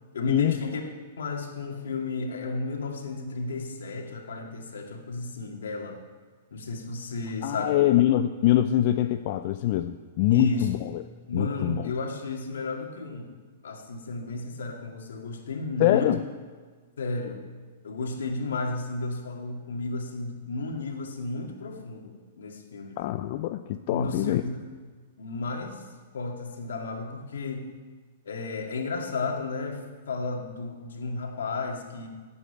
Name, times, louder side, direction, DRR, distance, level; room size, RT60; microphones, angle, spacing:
voice 1, 0.1-0.8 1.2-6.0 6.5-7.8 10.3-10.7 11.3-13.3 13.6-16.2 17.0-17.4 17.8-23.0 23.9-24.6 25.2-25.9 26.1-27.7 28.2-32.1, left 3 dB, 80° left, 1 dB, 2.2 m, -33 dB
voice 2, 7.4-11.0 11.3-11.9 15.8-16.2 23.0-24.4, left 13 dB, 50° left, 9 dB, 0.5 m, -24 dB
9.8 x 8.2 x 8.8 m, 1.5 s
hypercardioid pair, 125°, 0 cm